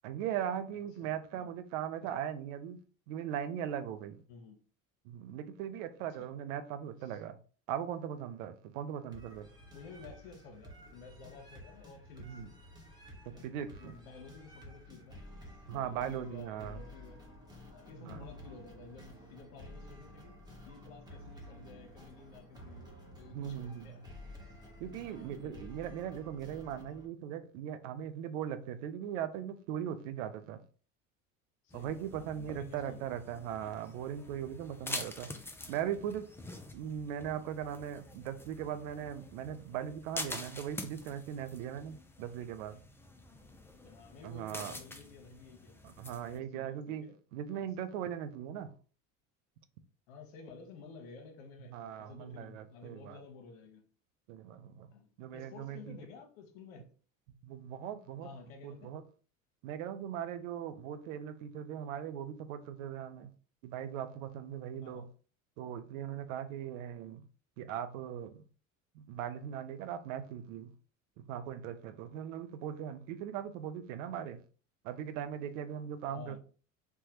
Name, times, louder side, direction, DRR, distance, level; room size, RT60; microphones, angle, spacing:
voice 1, 0.0-2.8 3.1-4.2 5.0-7.4 7.7-9.5 12.2-12.5 13.2-13.9 15.7-16.8 18.0-18.2 23.3-23.9 24.8-30.6 31.7-35.3 35.7-36.3 36.7-42.8 44.2-44.7 45.8-47.0 47.3-48.7 51.7-53.2 54.3-54.9 55.2-56.0 57.4-58.3 58.6-59.0 59.6-63.3 63.6-65.1 65.6-67.2 67.6-68.4 68.9-70.7 71.2-74.4 74.8-76.4, right 9 dB, 70° right, 0.5 m, -39 dB
voice 2, 1.0-1.5 2.0-2.1 4.3-4.6 6.2-6.3 7.0-7.2 9.7-12.4 13.3-13.4 13.8-15.2 15.7-17.3 17.7-20.4 20.7-24.0 24.4-24.5 25.0-25.7 31.6-33.1 35.3-35.4 43.8-45.8 46.1-47.2 47.4-47.9 50.1-53.8 54.9-56.9 58.2-59.0 64.8-65.1 76.1-76.4, left 5 dB, 75° left, 1.0 m, -52 dB
sound 1, 9.1-27.1, left 1 dB, 10° right, 1.0 m, -52 dB
sound 2, 31.7-46.4, left 2 dB, 5° left, 0.3 m, -47 dB
3.3 x 2.2 x 2.9 m
hypercardioid pair, 75°, 40 cm